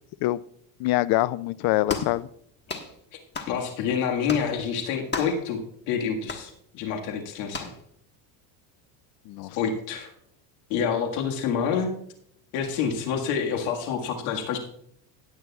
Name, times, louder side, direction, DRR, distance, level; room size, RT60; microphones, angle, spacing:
voice 1, 0.8-2.3 9.3-9.6, left 17 dB, 50° left, 19 dB, 0.5 m, -24 dB
sound 1, 1.9-2.2 2.7-2.9 3.3-3.6 4.3-4.5 5.1-5.4 6.3-6.5 7.5-7.8, left 4 dB, 20° left, 1.4 m, -33 dB
voice 2, 3.5-5.6 5.9-7.7 9.5-10.1 10.7-11.9 12.5-14.6, left 7 dB, 75° left, 2 dB, 1.9 m, -27 dB
17.5 x 9.1 x 2.4 m, 0.69 s
supercardioid pair, 110°, 48 cm